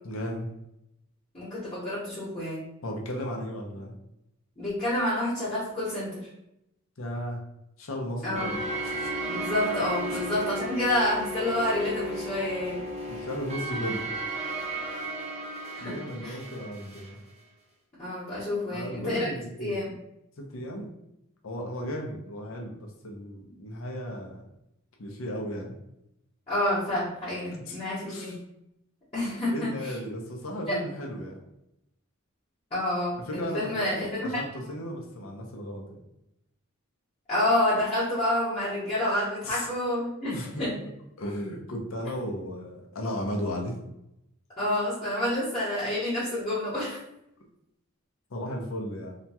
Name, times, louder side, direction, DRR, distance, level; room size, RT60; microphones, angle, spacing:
voice 1, 0.0-0.5 2.8-3.9 7.0-7.4 7.8-9.1 10.1-10.2 13.1-14.0 15.8-17.2 18.7-19.8 20.4-20.9 21.4-24.4 25.0-25.8 27.5-27.8 28.0-28.4 29.4-31.4 33.3-36.0 39.4-39.7 40.3-40.9 41.2-43.8 48.3-49.2, equal, 70° left, 0 dB, 0.6 m, -35 dB
voice 2, 1.3-2.7 4.6-6.3 8.2-8.5 9.3-12.8 15.8-15.9 16.2-16.4 18.0-19.3 19.6-19.9 26.5-28.3 29.1-29.9 30.7-30.8 32.7-34.6 37.3-40.3 40.6-40.7 44.6-47.0, left 1 dB, 30° left, -14 dB, 1.0 m, -28 dB
sound 1, 8.3-17.1, right 1 dB, 30° right, 0.6 m, -34 dB
2.8 x 2.2 x 2.7 m, 0.82 s
head